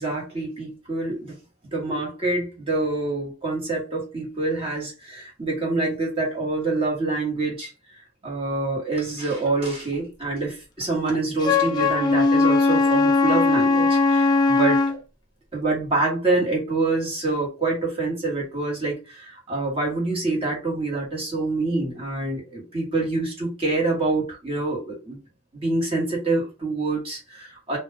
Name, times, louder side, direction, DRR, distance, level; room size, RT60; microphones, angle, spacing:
voice 1, 0.0-1.3 1.7-7.7 8.2-15.0 15.5-25.2 25.5-27.8, right 3 dB, 25° right, -3 dB, 1.1 m, -26 dB
Wind instrument woodwind instrument, 11.4-15.0, left 3 dB, 20° left, 0.4 m, -19 dB
2.2 x 2.1 x 3.2 m, 0.31 s
head